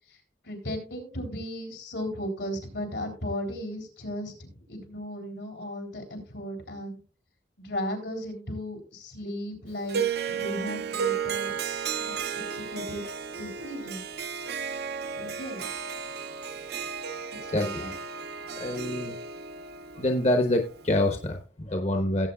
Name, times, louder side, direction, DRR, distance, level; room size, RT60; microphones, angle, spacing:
voice 1, 0.4-7.0 7.6-11.6 12.0-13.0 13.3-14.0 15.2-15.8 17.4-17.9, equal, 80° left, 3 dB, 3.6 m, -36 dB
Harp, 9.9-21.2, right 6 dB, 60° right, 0.6 m, -34 dB
voice 2, 18.6-19.2 20.0-22.3, left 1 dB, 35° left, 4 dB, 1.0 m, -26 dB
17.0 x 8.1 x 2.3 m, 0.35 s
head